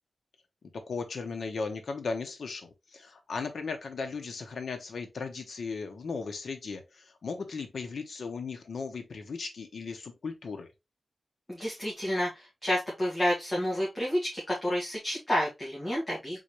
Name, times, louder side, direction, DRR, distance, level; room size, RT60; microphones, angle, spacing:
voice 1, 0.7-10.7, left 4 dB, 75° left, 1.1 m, -37 dB
voice 2, 11.5-16.4, left 1 dB, 20° left, 1.9 m, -30 dB
4.1 x 4.0 x 3.2 m
wide cardioid pair, 155°, 0 cm